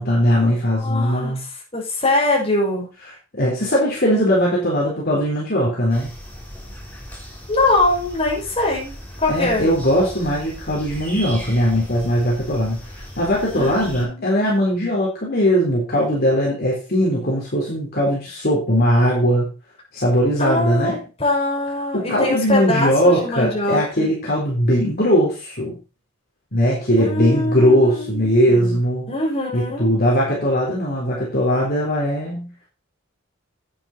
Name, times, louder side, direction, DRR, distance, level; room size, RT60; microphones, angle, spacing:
voice 1, 0.0-1.4 3.3-6.1 9.3-19.5 19.9-21.0 21.9-25.8 26.5-29.1 29.5-32.7, equal, 50° left, -4 dB, 3.9 m, -19 dB
voice 2, 0.8-1.3 1.7-2.9 7.5-8.9 9.2-9.7 13.5-14.4 20.4-20.9 21.2-24.1 26.9-28.8 29.1-29.9, left 2 dB, 30° left, -3 dB, 6.6 m, -22 dB
sound 1, 5.9-14.1, equal, 10° left, 4.4 m, -37 dB
10.5 x 9.8 x 4.4 m, 0.32 s
head